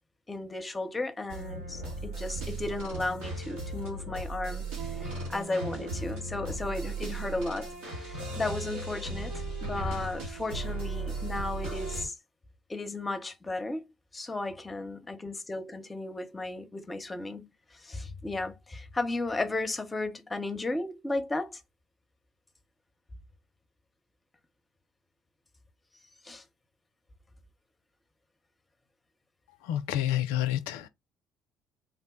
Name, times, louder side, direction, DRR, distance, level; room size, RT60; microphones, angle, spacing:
voice 1, 0.3-12.1 12.7-13.8 14.1-21.6 26.0-26.4, left 2 dB, 20° left, 0.8 m, -35 dB
sound 1, 1.3-12.0, right 3 dB, 70° right, 1.5 m, -36 dB
voice 2, 29.6-30.9, left 12 dB, 75° left, 0.4 m, -29 dB
3.6 x 2.1 x 3.7 m
hypercardioid pair, 50°, 0 cm